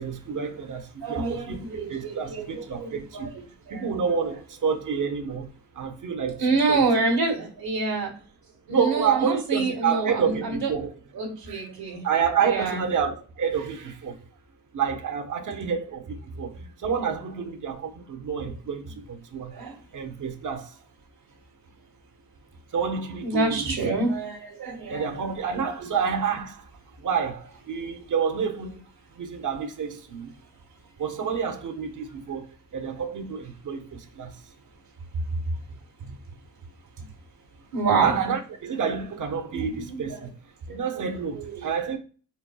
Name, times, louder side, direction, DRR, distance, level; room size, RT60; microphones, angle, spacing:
voice 1, 0.0-0.8 1.1-3.3 3.7-5.5 5.8-6.4 6.7-6.9 8.7-10.9 11.5-11.6 12.0-14.2 14.7-16.5 16.8-18.8 19.1-19.5 19.9-20.7 22.7-23.8 24.9-26.6 27.0-28.8 29.2-30.3 31.0-32.4 32.7-34.3 38.0-40.2 40.7-42.0, right 6 dB, 50° right, 1.1 m, -28 dB
voice 2, 1.0-3.9 6.4-8.1 8.7-10.7 11.1-12.1 12.4-12.8 16.3-16.4 19.5-19.8 23.2-25.4 37.7-38.1 39.5-40.1 40.7-41.0 41.3-41.7, right 3 dB, 70° right, 1.7 m, -27 dB
4.5 x 4.1 x 2.2 m
supercardioid pair, 50°, 38 cm